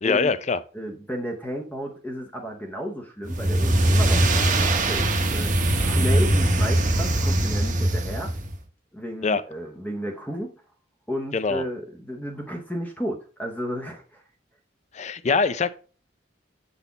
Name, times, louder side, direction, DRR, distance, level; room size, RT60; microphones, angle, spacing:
voice 1, 0.0-0.6 9.2-9.4 11.3-11.6 14.9-15.7, left 4 dB, 35° left, 0.4 m, -23 dB
voice 2, 0.7-5.5 5.8-8.3 8.9-10.5 11.1-14.2, equal, 10° left, 0.7 m, -33 dB
sound 1, 3.2-8.6, right 1 dB, 45° right, 0.9 m, -21 dB
7.1 x 4.1 x 3.9 m
head